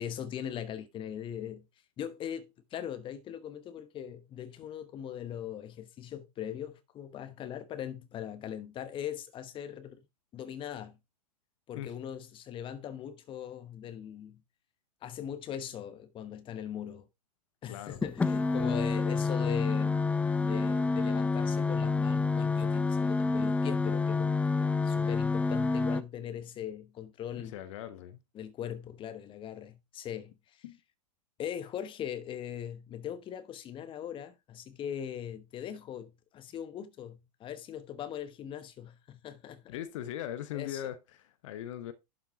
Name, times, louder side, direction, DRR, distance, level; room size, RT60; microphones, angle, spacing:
voice 1, 0.0-1.6 2.0-10.0 10.3-11.0 11.7-14.4 15.0-17.1 17.6-20.0 20.4-27.6 28.3-30.6 31.4-39.8 40.5-40.8, left 9 dB, 25° left, 1.1 m, -40 dB
voice 2, 17.6-18.0 27.4-28.2 30.6-30.8 39.7-41.9, left 11 dB, 50° left, 1.0 m, -40 dB
sound 1, 18.0-26.0, left 4 dB, 5° left, 0.4 m, -28 dB
11.5 x 5.8 x 3.6 m
figure-of-eight pair, 95°, 20 cm